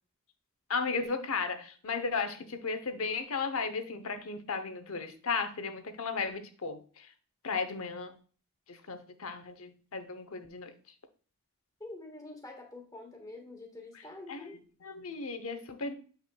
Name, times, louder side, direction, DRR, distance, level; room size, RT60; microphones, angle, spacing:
voice 1, 0.7-7.1 7.4-8.1 8.7-10.7 13.9-14.0 14.3-14.5 14.8-15.9, left 4 dB, 80° left, 8 dB, 0.8 m, -35 dB
voice 2, 11.8-14.6, left 2 dB, 15° left, 1 dB, 1.4 m, -46 dB
7.5 x 5.6 x 2.3 m, 0.41 s
head